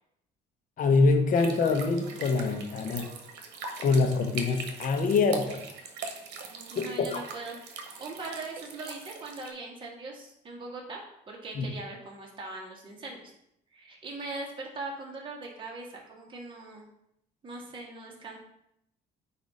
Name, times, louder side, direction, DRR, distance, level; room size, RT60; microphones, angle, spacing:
voice 1, 0.8-3.1 3.8-5.6 6.8-7.2 11.5-11.7, left 4 dB, 50° left, 5 dB, 1.1 m, -25 dB
sound 1, 1.3-9.5, right 4 dB, 85° right, 1.0 m, -41 dB
voice 2, 6.7-13.3 13.7-16.9 17.4-18.4, right 2 dB, 30° right, -2 dB, 1.8 m, -41 dB
8.4 x 2.8 x 4.9 m, 0.77 s
cardioid pair, 110°, 17 cm